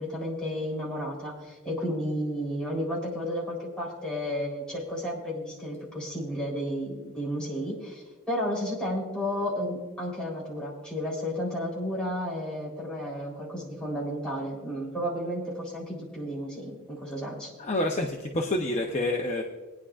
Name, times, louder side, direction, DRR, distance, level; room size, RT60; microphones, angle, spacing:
voice 1, 0.0-17.5, equal, 5° left, -5 dB, 3.7 m, -32 dB
voice 2, 17.6-19.4, left 1 dB, 30° left, 0 dB, 0.8 m, -28 dB
21.5 x 9.8 x 2.5 m, 1.3 s
head